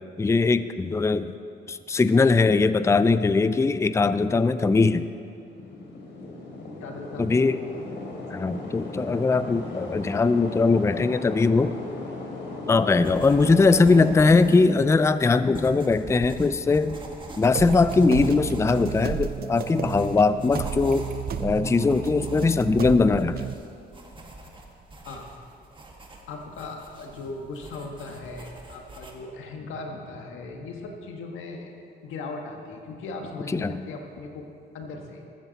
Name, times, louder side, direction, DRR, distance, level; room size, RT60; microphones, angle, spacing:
voice 1, 0.2-1.4 1.7-5.1 7.2-7.6 8.3-11.7 12.7-17.0 17.4-21.1 21.4-23.5 33.5-33.8, left 4 dB, 15° left, 13 dB, 0.4 m, -21 dB
sound 1, 5.2-14.6, left 2 dB, 65° left, 3.1 m, -37 dB
voice 2, 6.8-7.5 8.1-8.2 13.4-13.8 17.1-17.2 25.0-25.3 26.3-31.7 32.0-35.2, left 3 dB, 85° left, 2 dB, 1.6 m, -38 dB
sound 2, 13.0-29.1, right 2 dB, 25° right, 1.8 m, -43 dB
sound 3, 17.6-23.5, right 8 dB, 50° right, 0.5 m, -32 dB
14.0 x 13.5 x 4.1 m, 2.6 s
cardioid pair, 90°, 20 cm